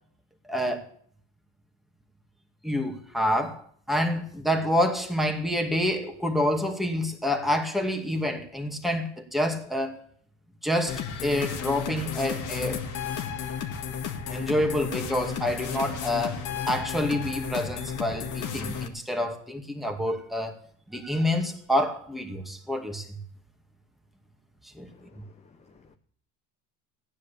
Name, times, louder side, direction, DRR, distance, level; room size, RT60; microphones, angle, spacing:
voice 1, 0.5-0.8 2.6-3.6 3.9-9.9 10.6-12.9 14.3-20.6 20.9-23.2 24.7-24.9, left 1 dB, ahead, 2.2 m, -27 dB
sound 1, 10.9-18.9, left 7 dB, 50° left, 1.9 m, -33 dB
voice 2, 24.9-25.9, left 5 dB, 15° left, 0.7 m, -57 dB
15.5 x 9.7 x 6.9 m
cardioid pair, 115°, 39 cm